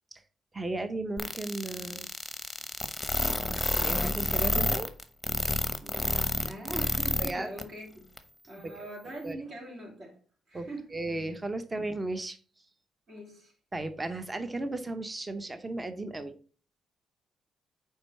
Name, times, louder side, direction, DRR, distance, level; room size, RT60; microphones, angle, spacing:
voice 1, 0.5-2.1 3.8-4.9 7.2-7.5 8.6-9.4 10.5-12.4 13.7-16.4, right 2 dB, 20° right, 0.8 m, -35 dB
sound 1, 1.2-7.3 7.6-7.7 8.2-8.3, left 2 dB, 10° left, 0.9 m, -29 dB
voice 2, 5.8-8.1 8.5-10.2 10.5-10.9 13.1-13.5, right 1 dB, 50° right, 2.9 m, -42 dB
4.9 x 4.5 x 5.5 m
cardioid pair, 90°, 0 cm